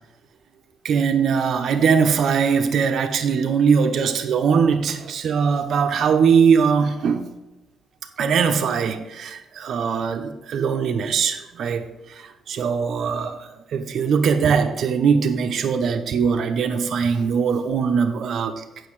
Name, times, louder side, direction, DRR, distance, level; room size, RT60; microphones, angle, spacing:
voice 1, 0.8-7.3 8.2-18.6, right 6 dB, 65° right, 6 dB, 1.0 m, -21 dB
9.0 x 6.4 x 4.9 m, 1.0 s
cardioid pair, 90°, 0 cm